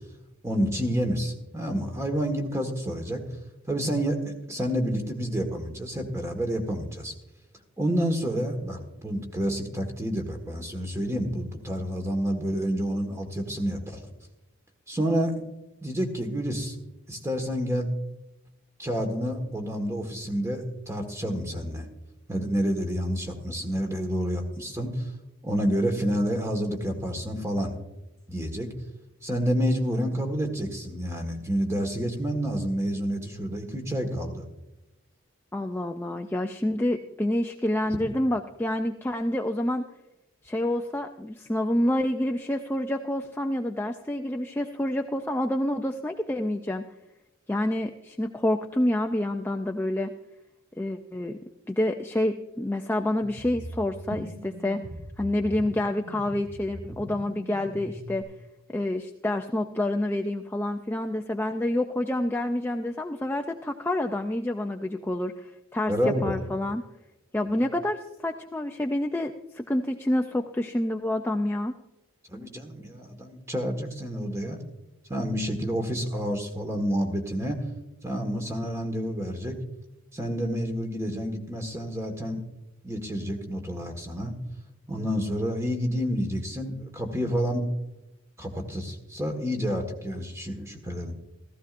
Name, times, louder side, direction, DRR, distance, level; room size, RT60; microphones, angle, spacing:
voice 1, 0.4-3.2 3.7-7.1 7.8-14.0 14.9-15.5 15.8-16.7 17.1-17.9 18.8-21.9 22.3-25.1 25.4-27.7 28.3-28.7 29.2-34.4 65.9-66.4 67.5-67.7 72.3-74.6 75.1-77.6 78.0-79.6 80.1-82.4 82.8-84.3 84.9-87.7 88.4-91.1, equal, 15° right, 4 dB, 1.5 m, -29 dB
voice 2, 35.5-39.8 40.4-46.8 47.5-50.1 50.8-51.4 51.7-54.8 55.2-58.2 58.7-65.9 66.2-66.8 67.3-71.7, left 1 dB, 10° left, 4 dB, 0.4 m, -28 dB
sound 1, 53.2-58.2, equal, 85° right, 3.6 m, -41 dB
15.0 x 15.0 x 2.5 m, 0.96 s
head